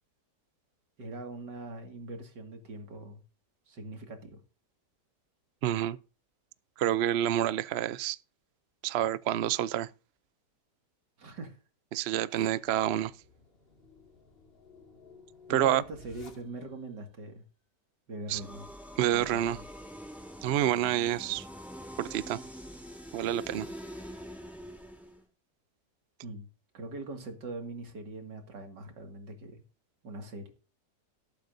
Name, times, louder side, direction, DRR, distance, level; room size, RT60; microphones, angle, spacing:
voice 1, 1.0-3.2 3.7-4.4 11.2-11.6 12.3-12.6 15.5-17.4 18.1-18.7 19.1-19.6 26.2-26.5 26.7-29.6 30.0-30.5, right 2 dB, 85° right, 2.8 m, -42 dB
voice 2, 5.6-6.0 6.8-8.2 8.8-9.9 11.9-13.1 15.5-15.8 18.3-18.4 19.0-19.6 20.4-21.4 22.0-22.4 23.1-23.7, right 12 dB, 70° right, 0.6 m, -28 dB
Dark Teleport, 12.5-16.9, left 4 dB, 35° left, 2.2 m, -55 dB
sound 1, 18.3-25.2, equal, ahead, 3.2 m, -45 dB
18.5 x 8.4 x 2.7 m
omnidirectional pair, 1.8 m